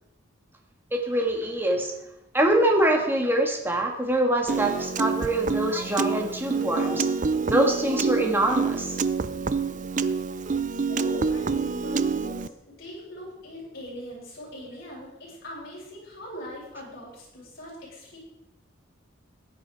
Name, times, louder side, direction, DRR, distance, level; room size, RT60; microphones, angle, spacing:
voice 1, 0.9-1.9 2.3-7.1 7.4-9.0, right 1 dB, 10° right, 2 dB, 1.9 m, -24 dB
Piano, 4.5-12.5, right 4 dB, 40° right, 0.5 m, -27 dB
voice 2, 10.9-18.2, equal, 50° left, -6 dB, 6.9 m, -41 dB
16.0 x 10.5 x 4.9 m, 0.84 s
head